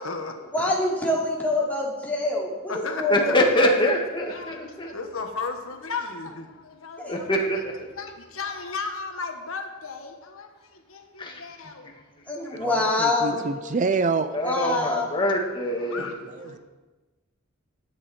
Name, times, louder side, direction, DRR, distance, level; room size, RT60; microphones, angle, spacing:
voice 1, 0.0-0.7 2.7-3.8 4.3-7.6 7.9-12.0 13.3-13.7 14.6-15.1 15.8-16.6, left 4 dB, 85° left, 4 dB, 1.4 m, -35 dB
voice 2, 0.5-3.5 7.0-7.2 12.3-13.4 14.4-15.0, left 2 dB, 10° left, -4 dB, 2.8 m, -25 dB
voice 3, 3.1-4.9 7.1-7.7 11.2-11.4 14.3-16.1, equal, 25° left, 0 dB, 1.8 m, -24 dB
voice 4, 12.6-14.4 16.4-16.6, right 4 dB, 35° right, 11 dB, 0.4 m, -27 dB
15.5 x 10.0 x 4.3 m, 1.2 s
head